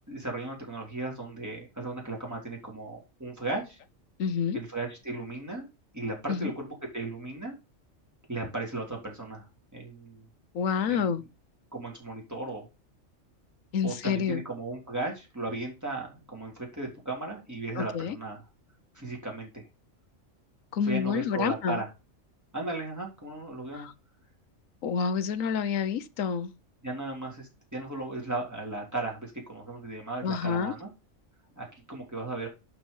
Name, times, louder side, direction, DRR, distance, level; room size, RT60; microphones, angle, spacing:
voice 1, 0.1-3.8 4.5-5.7 5.9-7.5 8.3-9.5 9.7-10.2 10.9-11.1 11.7-12.7 13.8-18.4 18.9-19.6 20.9-21.9 22.5-23.9 26.8-30.9 31.6-32.5, right 2 dB, 15° right, 3.5 m, -36 dB
voice 2, 4.2-4.6 6.3-6.5 10.5-11.2 13.7-14.4 17.8-18.2 20.7-21.8 23.7-23.9 24.8-26.5 30.2-30.7, left 6 dB, 85° left, 1.3 m, -28 dB
11.5 x 4.8 x 5.4 m
omnidirectional pair, 1.3 m